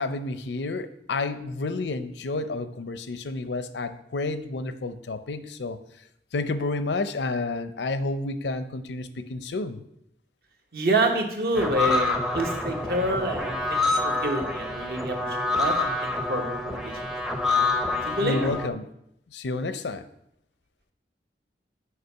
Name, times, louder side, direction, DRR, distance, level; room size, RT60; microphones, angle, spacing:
voice 1, 0.0-5.8 6.3-9.8 18.2-18.9 19.3-20.0, left 3 dB, 80° left, 11 dB, 0.6 m, -30 dB
voice 2, 10.7-17.0 17.7-18.4, right 1 dB, 60° right, 3 dB, 1.1 m, -28 dB
sound 1, 11.5-18.7, left 2 dB, 5° right, 0.5 m, -27 dB
6.7 x 4.9 x 5.5 m, 0.77 s
head